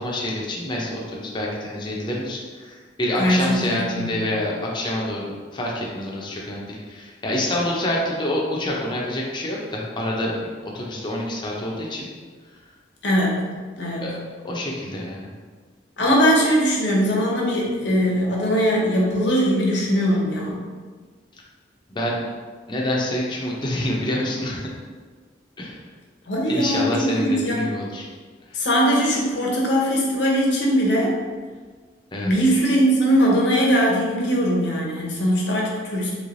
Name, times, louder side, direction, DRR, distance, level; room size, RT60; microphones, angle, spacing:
voice 1, 0.0-10.3 10.6-12.1 14.0-14.1 14.4-15.3 21.9-22.2 22.7-24.6 25.6-25.8 26.5-28.0 32.1-32.3, left 1 dB, 25° left, -3 dB, 0.5 m, -27 dB
voice 2, 3.2-4.1 13.0-14.1 16.0-20.6 26.3-27.6 28.5-31.1 32.2-36.1, equal, 75° left, -3 dB, 0.8 m, -20 dB
3.1 x 3.1 x 2.5 m, 1.5 s
head